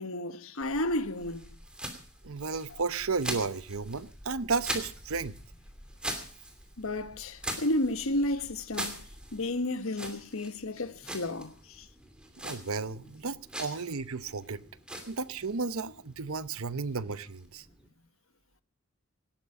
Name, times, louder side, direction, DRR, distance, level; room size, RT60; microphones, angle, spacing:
voice 1, 0.0-1.5 2.7-2.8 6.8-9.0 9.3-11.9, left 1 dB, 75° left, 1.3 m, -32 dB
sound 1, 0.6-17.9, right 1 dB, 5° right, 2.7 m, -43 dB
voice 2, 2.2-5.4 12.4-14.6 15.1-17.6, right 4 dB, 75° right, 0.8 m, -33 dB
18.0 x 14.5 x 4.9 m
head